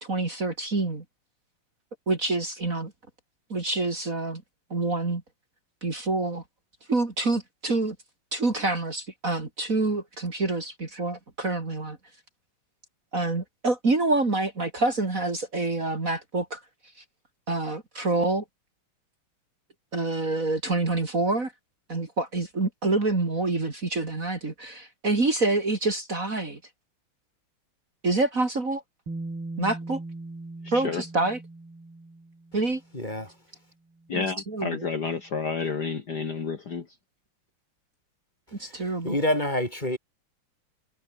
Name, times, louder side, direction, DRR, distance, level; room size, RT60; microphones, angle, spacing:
voice 1, 0.0-1.0 2.1-2.9 3.5-4.4 4.7-5.2 5.8-6.4 6.9-8.0 8.3-12.0 13.1-16.6 17.5-18.4 19.9-21.5 21.9-26.6 28.0-28.8 29.6-30.0 30.7-31.4 32.5-32.8 34.1-34.9 38.6-39.2, right 2 dB, 35° right, 3.5 m, -27 dB
Bass guitar, 29.1-33.0 34.1-34.2, right 2 dB, 65° right, 8.8 m, -39 dB
voice 2, 30.6-31.0 34.1-36.9, left 5 dB, 50° left, 2.5 m, -30 dB
voice 3, 32.9-33.3 38.6-40.0, left 1 dB, 20° left, 6.8 m, -28 dB
omnidirectional pair, 2.4 m